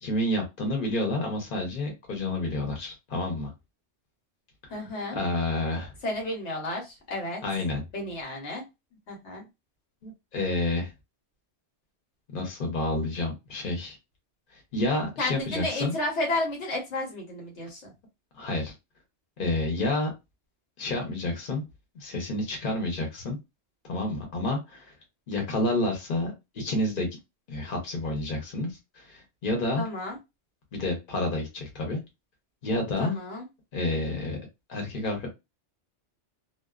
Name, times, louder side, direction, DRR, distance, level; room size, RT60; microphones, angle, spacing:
voice 1, 0.0-3.5 4.6-4.7 5.1-5.9 7.4-7.8 10.0-10.9 12.3-14.0 14.5-15.9 18.3-18.7 19.4-20.1 20.8-21.6 21.9-23.4 23.8-24.9 25.3-27.1 27.5-29.9 30.7-32.0 32.6-33.2 33.7-34.4 34.7-35.3, left 2 dB, 50° left, 2 dB, 1.0 m, -29 dB
voice 2, 4.7-5.2 6.0-7.4 7.9-8.6 9.1-9.4 15.2-17.9 29.8-30.2 33.0-33.5, left 2 dB, 80° left, 0 dB, 1.2 m, -32 dB
2.3 x 2.3 x 2.3 m, 0.22 s
omnidirectional pair, 1.2 m